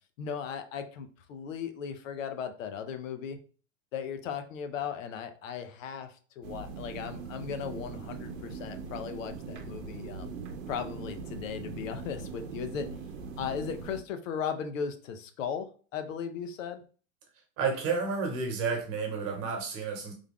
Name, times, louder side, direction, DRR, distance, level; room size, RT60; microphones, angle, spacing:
voice 1, 0.2-3.4 3.9-10.3 10.7-12.9 13.4-15.7 15.9-16.8, left 7 dB, 80° left, 8 dB, 0.7 m, -37 dB
sound 1, 6.4-14.0, right 5 dB, 85° right, 0.8 m, -41 dB
voice 2, 17.6-20.1, right 5 dB, 35° right, 3 dB, 1.1 m, -31 dB
3.5 x 2.3 x 3.6 m, 0.39 s
supercardioid pair, 145°, 38 cm